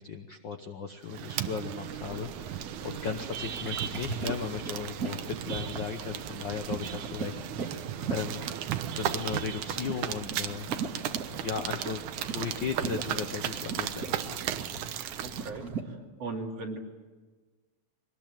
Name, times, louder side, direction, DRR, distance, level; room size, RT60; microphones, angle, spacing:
voice 1, 0.0-8.4 9.0-10.7 11.4-14.5, left 6 dB, 80° left, 7 dB, 1.0 m, -36 dB
sound 1, 1.1-15.5, right 11 dB, 75° right, 2.3 m, -36 dB
sound 2, 1.9-15.8, right 4 dB, 35° right, 1.9 m, -40 dB
voice 2, 15.2-15.9 16.2-16.8, right 3 dB, 50° right, 1 dB, 3.6 m, -38 dB
23.0 x 20.0 x 9.0 m, 1.3 s
omnidirectional pair, 3.7 m